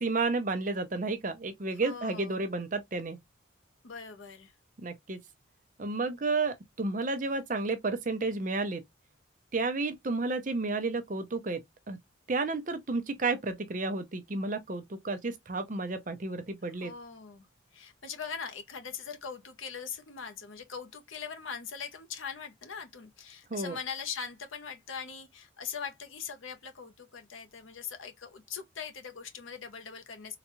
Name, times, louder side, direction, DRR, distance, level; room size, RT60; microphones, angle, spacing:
voice 1, 0.0-3.2 4.8-5.2 5.8-8.8 9.5-12.0 12.3-16.9 23.5-23.8, right 3 dB, 40° right, 0.6 m, -32 dB
voice 2, 1.8-2.4 3.8-4.5 16.8-17.5 17.7-30.4, left 6 dB, 80° left, 0.8 m, -41 dB
3.8 x 2.3 x 3.0 m
head